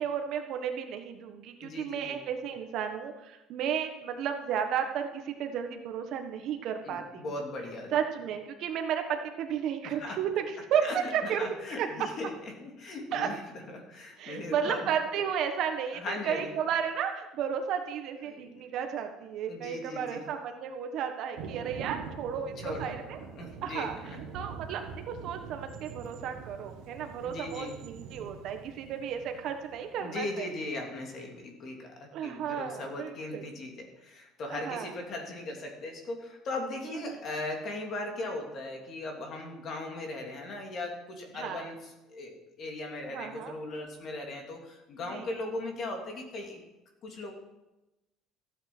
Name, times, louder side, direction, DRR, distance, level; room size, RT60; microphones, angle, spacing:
voice 1, 0.0-7.3 7.9-11.9 13.1-13.3 14.2-23.2 23.6-24.0 24.3-30.5 32.1-33.4 34.5-34.9 36.9-37.2 41.3-41.7 43.1-43.6 45.1-45.3, right 8 dB, 50° right, 6 dB, 1.4 m, -33 dB
voice 2, 1.6-2.2 6.8-7.9 9.8-10.2 10.8-11.0 11.2-12.3 12.6-13.4 13.7-14.9 15.9-16.5 18.3-18.6 19.5-20.2 22.6-23.0 23.4-24.2 27.2-27.7 30.0-46.6 47.0-47.3, left 2 dB, 35° left, 2 dB, 2.9 m, -38 dB
Thunder, 21.3-30.3, right 6 dB, 75° right, 1.6 m, -44 dB
15.0 x 9.2 x 6.2 m, 0.98 s
cardioid pair, 165°, 0 cm